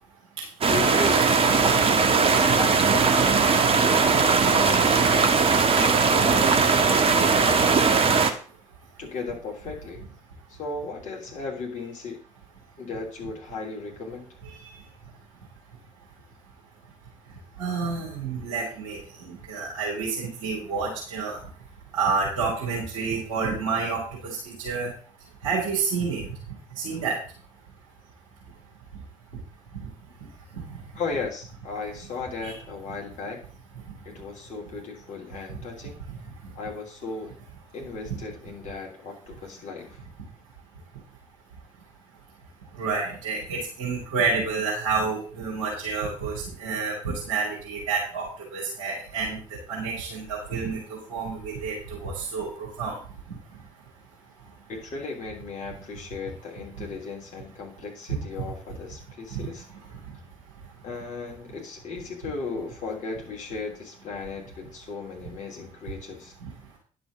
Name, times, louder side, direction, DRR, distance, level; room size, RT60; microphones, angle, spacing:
sound 1, 0.6-8.3, right 5 dB, 35° right, 1.4 m, -19 dB
voice 1, 0.7-3.2 4.1-5.3 5.5-6.6 7.0-7.4 9.0-10.0 10.5-12.2 12.8-14.3 30.9-33.5 34.0-36.0 36.5-37.3 37.7-40.0 54.7-59.6 60.8-66.3, left 4 dB, 45° left, -1 dB, 3.1 m, -36 dB
voice 2, 17.6-21.4 21.9-24.9 25.4-26.3 26.8-27.2 30.6-30.8 32.4-32.5 38.1-38.2 42.8-48.3 48.5-53.0 58.1-58.5 59.3-59.5, right 4 dB, 70° right, -4 dB, 3.0 m, -29 dB
10.5 x 5.9 x 6.2 m, 0.41 s
figure-of-eight pair, 50°, 17 cm